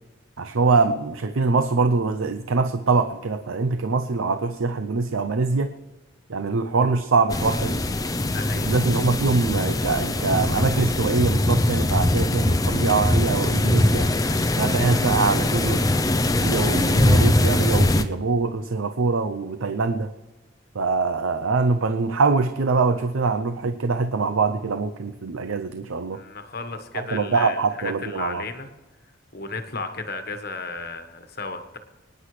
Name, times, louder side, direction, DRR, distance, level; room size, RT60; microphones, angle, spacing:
voice 1, 0.4-5.7 6.3-7.8 8.6-14.1 14.6-15.9 16.4-20.1 20.7-26.2 26.9-28.4, right 4 dB, 80° right, 9 dB, 0.6 m, -23 dB
sound 1, 7.3-18.0, left 1 dB, 15° left, 0.5 m, -22 dB
voice 2, 8.3-8.7 26.1-28.7 29.3-31.8, left 3 dB, 50° left, 7 dB, 1.3 m, -34 dB
25.0 x 10.0 x 3.3 m, 1.1 s
head